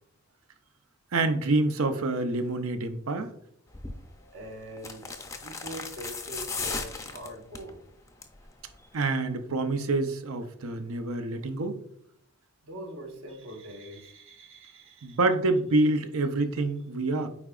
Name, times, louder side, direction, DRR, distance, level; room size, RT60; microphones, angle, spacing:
voice 1, 1.1-3.3 8.9-11.8 15.0-17.3, right 2 dB, 80° right, 0.7 m, -27 dB
sound 1, 3.7-4.0 4.8-7.7 8.1-8.4 8.7-8.8, left 4 dB, 15° left, 0.4 m, -36 dB
voice 2, 4.0-7.8 12.6-15.2, right 1 dB, 65° right, 1.1 m, -43 dB
8.4 x 4.7 x 2.4 m
head